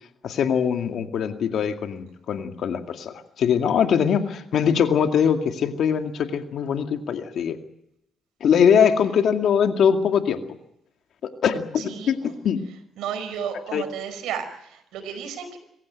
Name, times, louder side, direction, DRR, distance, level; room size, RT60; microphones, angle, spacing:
voice 1, 0.2-7.6 8.4-10.4 11.2-12.2 12.4-12.6 13.7-13.9, left 7 dB, 65° left, 6 dB, 2.2 m, -22 dB
voice 2, 11.8-12.3 13.0-15.6, right 8 dB, 85° right, 7 dB, 5.1 m, -33 dB
27.0 x 15.0 x 9.3 m, 0.82 s
cardioid pair, 90°, 0 cm